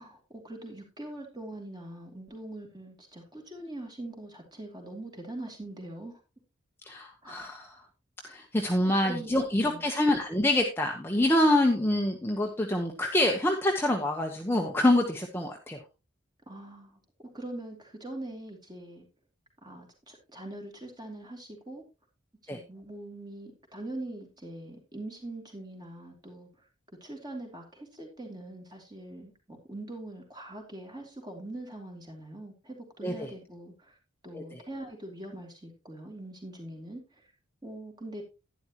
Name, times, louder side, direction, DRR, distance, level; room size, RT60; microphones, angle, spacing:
voice 1, 0.0-6.2 7.2-7.5 8.6-9.8 16.5-17.0 17.3-19.0 19.6-21.8 22.4-26.5 27.0-34.0 34.2-37.2 37.6-38.2, right 1 dB, 20° right, 1 dB, 2.8 m, -42 dB
voice 2, 6.8-7.8 8.2-15.8 22.5-22.6 33.0-33.3 34.3-34.6, left 1 dB, 10° left, 2 dB, 1.0 m, -26 dB
11.5 x 10.5 x 2.9 m, 0.28 s
head